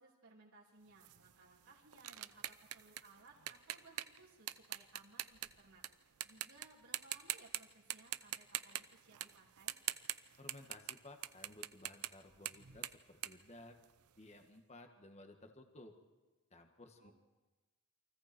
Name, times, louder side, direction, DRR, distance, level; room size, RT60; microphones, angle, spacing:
voice 1, 0.0-9.8 17.0-17.1, right 3 dB, 70° right, -4 dB, 3.2 m, -62 dB
sound 1, 1.0-5.9 6.2-6.7 6.9-7.6 7.9-14.2, right 13 dB, 85° right, 0.8 m, -43 dB
voice 2, 10.4-13.8 14.2-15.9 16.5-17.1, left 2 dB, 30° left, 4 dB, 1.9 m, -57 dB
29.0 x 24.0 x 4.6 m, 1.2 s
head